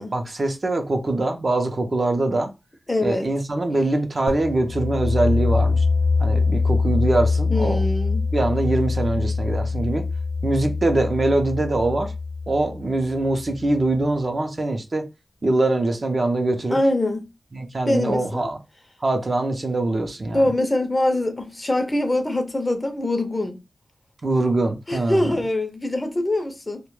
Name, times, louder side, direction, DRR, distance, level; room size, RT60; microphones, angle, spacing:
voice 1, 0.1-2.5 3.0-5.8 6.2-7.8 8.3-10.0 10.4-12.1 12.5-15.1 15.4-16.8 17.5-18.6 19.0-20.5 24.2-25.4, right 2 dB, 45° right, 0.5 m, -23 dB
voice 2, 2.9-3.3 7.5-8.3 16.7-17.3 17.9-18.5 20.3-23.6 24.9-26.8, left 1 dB, 25° left, 0.5 m, -23 dB
sound 1, 4.3-13.9, left 4 dB, 90° left, 0.3 m, -24 dB
2.2 x 2.1 x 3.0 m
wide cardioid pair, 80°, 0 cm